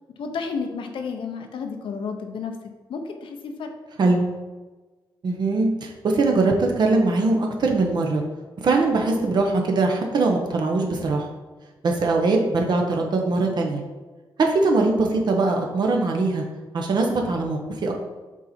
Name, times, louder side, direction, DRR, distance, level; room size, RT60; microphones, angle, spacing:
voice 1, 0.2-2.6 2.9-3.7, left 5 dB, 85° left, 4 dB, 0.8 m, -31 dB
voice 2, 5.2-8.2 8.6-11.3 11.8-13.8 14.4-16.4 16.7-17.9, right 3 dB, 55° right, 2 dB, 0.9 m, -21 dB
7.3 x 4.2 x 4.3 m, 1.2 s
wide cardioid pair, 145°, 9 cm